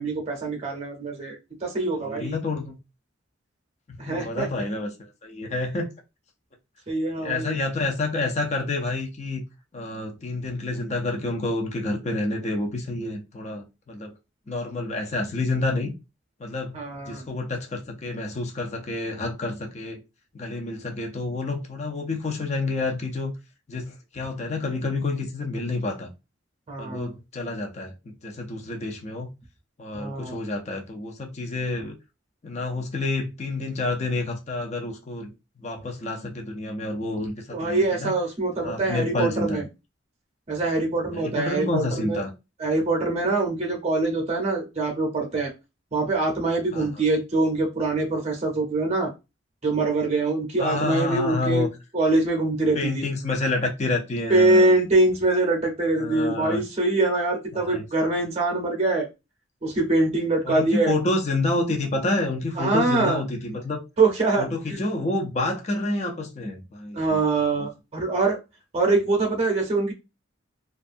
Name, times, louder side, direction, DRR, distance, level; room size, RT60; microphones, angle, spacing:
voice 1, 0.0-2.4 4.0-4.6 6.9-7.6 16.7-17.2 26.7-27.1 29.9-30.4 37.5-39.7 40.5-42.2 42.6-45.5 45.9-49.1 49.6-51.7 51.9-53.1 54.3-59.1 59.6-60.9 62.6-63.2 64.0-64.8 66.9-68.4 68.7-69.9, right 2 dB, 35° right, 0.7 m, -24 dB
voice 2, 2.1-2.8 3.9-4.9 5.2-5.9 7.2-9.4 9.7-14.1 14.5-15.9 16.4-16.8 17.1-20.0 20.3-23.3 23.7-26.1 26.8-27.9 28.2-29.3 29.8-31.9 32.4-35.3 35.6-38.1 38.6-39.6 41.1-42.3 46.7-46.9 50.6-51.7 52.7-54.7 56.0-56.6 57.5-58.1 60.4-63.8 64.4-67.2 67.6-67.7, left 2 dB, 35° left, 0.5 m, -28 dB
2.6 x 2.4 x 2.5 m
head